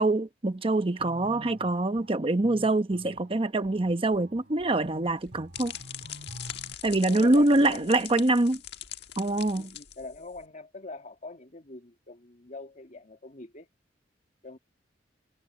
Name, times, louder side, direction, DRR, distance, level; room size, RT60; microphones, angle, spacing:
voice 1, 0.0-5.7 6.8-8.6 9.2-9.7, right 2 dB, 30° right, 0.9 m, -25 dB
sound 1, 1.0-6.7, equal, 60° right, 1.8 m, -48 dB
sound 2, 5.0-10.4, left 11 dB, 65° left, 1.5 m, -42 dB
voice 2, 7.1-8.0 9.6-13.7 14.4-14.6, left 3 dB, 45° left, 2.2 m, -43 dB
head